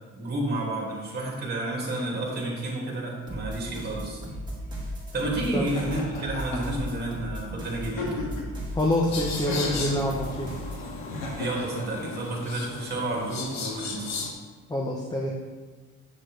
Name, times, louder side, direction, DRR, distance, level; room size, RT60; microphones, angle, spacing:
voice 1, 0.1-4.2 5.1-8.3 11.4-14.1, right 2 dB, 30° right, -3 dB, 2.2 m, -30 dB
sound 1, 3.3-10.9, equal, 15° right, 2.0 m, -37 dB
Laughter, 5.7-6.8 7.8-8.6 9.5-10.0 11.1-11.8, left 2 dB, 75° left, 1.8 m, -34 dB
voice 2, 8.7-10.5 14.7-15.3, left 1 dB, 10° left, -1 dB, 0.7 m, -26 dB
sound 2, 9.1-14.3, left 4 dB, 55° left, 1.0 m, -36 dB
7.8 x 6.4 x 3.2 m, 1.4 s
cardioid pair, 130°, 32 cm